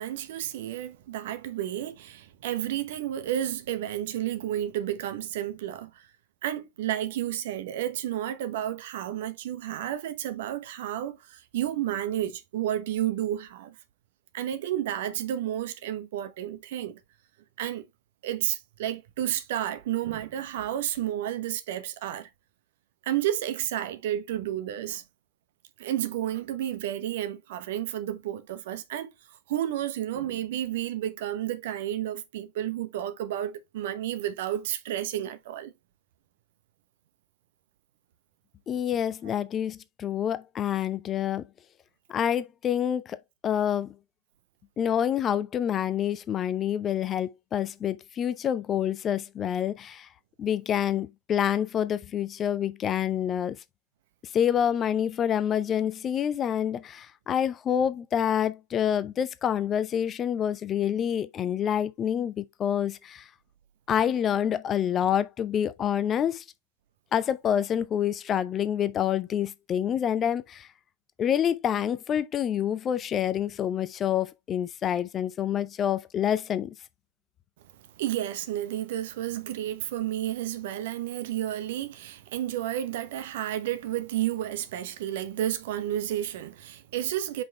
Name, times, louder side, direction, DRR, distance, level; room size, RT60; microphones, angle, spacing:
voice 1, 0.0-6.1 6.4-13.7 14.3-17.0 17.6-17.9 18.2-22.3 23.0-25.0 25.8-29.1 29.5-35.7 78.0-87.4, right 12 dB, 55° right, 0.9 m, -31 dB
voice 2, 38.7-41.5 42.1-43.2 43.4-43.9 44.8-50.1 50.4-53.6 54.3-63.3 63.9-66.4 67.1-70.7 71.2-76.7, left 9 dB, 25° left, 0.6 m, -27 dB
5.9 x 5.1 x 3.1 m
figure-of-eight pair, 90°, 0 cm